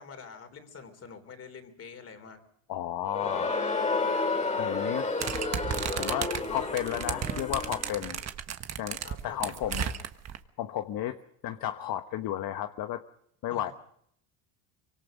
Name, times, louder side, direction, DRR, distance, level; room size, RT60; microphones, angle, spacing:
voice 1, 0.0-2.4 9.0-10.0 13.5-13.7, left 5 dB, 35° left, 8 dB, 3.8 m, -47 dB
voice 2, 2.7-3.8 4.6-5.0 6.0-8.2 8.8-9.0 9.2-9.9 10.6-11.2 11.4-13.0 13.4-13.7, left 12 dB, 55° left, 8 dB, 1.2 m, -33 dB
Crowd, 3.0-8.1, left 3 dB, 15° left, 2.6 m, -31 dB
sound 1, 5.2-10.4, right 8 dB, 40° right, 1.4 m, -34 dB
24.5 x 23.5 x 5.2 m, 0.69 s
cardioid pair, 115°, 41 cm